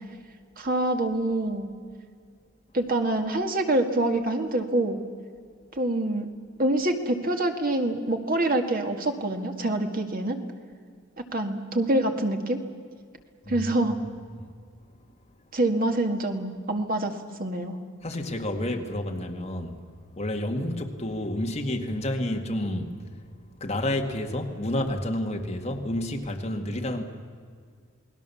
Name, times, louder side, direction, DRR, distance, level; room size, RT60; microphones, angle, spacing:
voice 1, 0.6-1.7 2.7-5.0 5.7-6.3 6.6-10.4 11.3-12.6 13.5-14.0 15.5-17.1 17.4-17.8, right 1 dB, 45° right, 5 dB, 2.0 m, -25 dB
voice 2, 13.4-14.4 18.0-19.8 20.2-22.9 23.6-27.0, left 1 dB, 30° left, 3 dB, 2.1 m, -30 dB
28.5 x 20.0 x 7.1 m, 2.1 s
head